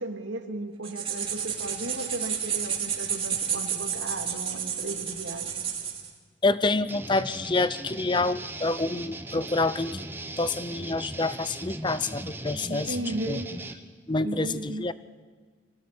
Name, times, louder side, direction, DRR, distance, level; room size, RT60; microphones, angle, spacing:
voice 1, 0.0-5.6 12.7-13.5 14.2-14.8, right 2 dB, 80° right, 4 dB, 2.8 m, -35 dB
sound 1, 0.8-6.1, right 8 dB, 30° right, 2.9 m, -31 dB
voice 2, 6.4-10.0 10.4-12.9 13.3-13.4 14.1-14.9, left 3 dB, 25° left, 16 dB, 0.6 m, -27 dB
sound 2, 6.9-13.7, right 2 dB, 10° right, 1.3 m, -38 dB
24.5 x 17.5 x 8.6 m, 1.5 s
head